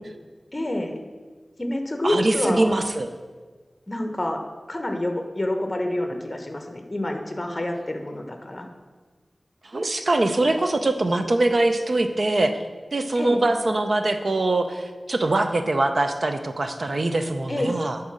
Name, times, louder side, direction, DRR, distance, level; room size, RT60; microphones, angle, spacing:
voice 1, 0.5-1.0 1.6-2.7 3.9-4.4 4.7-8.7 13.1-13.4 17.5-17.7, left 1 dB, 30° left, 4 dB, 1.3 m, -27 dB
voice 2, 2.0-3.1 9.6-12.6 12.9-18.0, right 2 dB, 60° right, 7 dB, 0.8 m, -23 dB
10.5 x 4.2 x 6.4 m, 1.4 s
wide cardioid pair, 70°, 0 cm